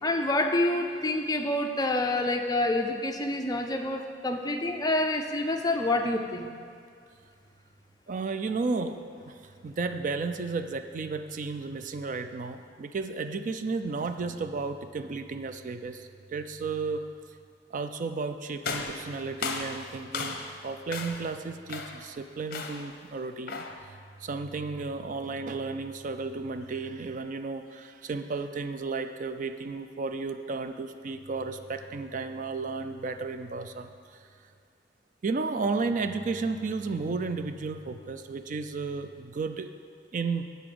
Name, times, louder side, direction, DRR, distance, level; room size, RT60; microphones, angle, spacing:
voice 1, 0.0-6.5, left 1 dB, 20° left, 4 dB, 0.6 m, -27 dB
voice 2, 8.1-17.0 17.7-33.9 35.2-39.7 40.1-40.4, right 4 dB, 45° right, 9 dB, 0.4 m, -33 dB
sound 1, 18.6-20.6 20.9-21.3 21.7-22.1 22.5-22.9 23.5-23.8, left 4 dB, 55° left, 0.8 m, -35 dB
11.0 x 4.1 x 7.8 m, 2.2 s
head